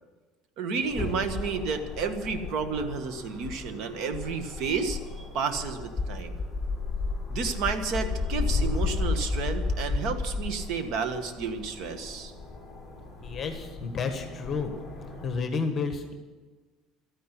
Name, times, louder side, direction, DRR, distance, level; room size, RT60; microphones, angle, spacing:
voice 1, 0.6-6.3 7.3-12.3, right 5 dB, 60° right, 9 dB, 1.6 m, -31 dB
sound 1, 0.8-15.3, left 4 dB, 5° left, 3.3 m, -33 dB
voice 2, 13.2-14.7 15.2-16.1, left 5 dB, 30° left, 6 dB, 1.5 m, -31 dB
13.5 x 10.0 x 9.8 m, 1.3 s
cardioid pair, 150°, 0 cm